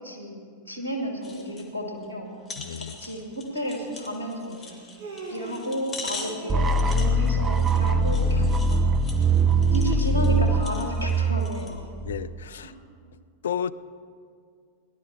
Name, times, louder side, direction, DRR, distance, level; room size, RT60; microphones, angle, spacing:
voice 1, 0.0-2.3 2.8-4.8 5.3-8.8 9.7-11.8 12.6-12.8, equal, 85° right, 1 dB, 2.4 m, -32 dB
sound 1, 1.2-1.7 2.0-2.1 2.5-11.8 12.3-12.4, left 4 dB, 25° left, 1.9 m, -42 dB
voice 2, 2.6-3.0 12.0-12.7 13.4-13.7, left 8 dB, 65° left, 16 dB, 0.4 m, -32 dB
Human voice, 3.2-3.3 4.6-5.8 6.2-7.2, right 2 dB, 55° right, 2.8 m, -40 dB
sound 2, 6.5-12.4, right 2 dB, 20° right, 0.8 m, -22 dB
18.0 x 12.0 x 4.7 m, 2.2 s
figure-of-eight pair, 90°, 0 cm